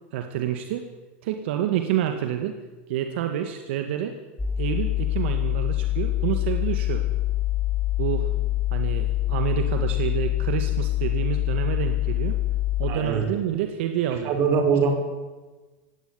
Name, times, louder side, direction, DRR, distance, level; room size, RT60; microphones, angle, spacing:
voice 1, 0.1-0.9 1.2-2.6 2.9-4.2 4.6-7.0 8.0-8.3 8.7-12.4 12.8-14.3, right 10 dB, 70° right, 6 dB, 2.0 m, -28 dB
sound 1, 4.4-12.9, left 15 dB, 10° left, 2.4 m, -25 dB
voice 2, 12.8-13.2 14.2-14.9, right 6 dB, 35° right, 5 dB, 5.1 m, -22 dB
18.5 x 17.0 x 9.8 m, 1.2 s
supercardioid pair, 155°, 6 cm